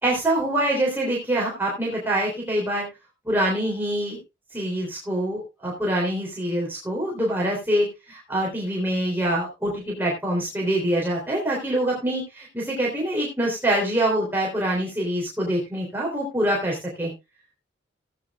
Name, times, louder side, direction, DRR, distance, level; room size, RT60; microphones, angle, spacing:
voice 1, 0.0-2.9 3.2-4.2 4.5-17.1, right 1 dB, 10° right, -3 dB, 3.5 m, -25 dB
17.5 x 9.3 x 2.4 m, 0.25 s
head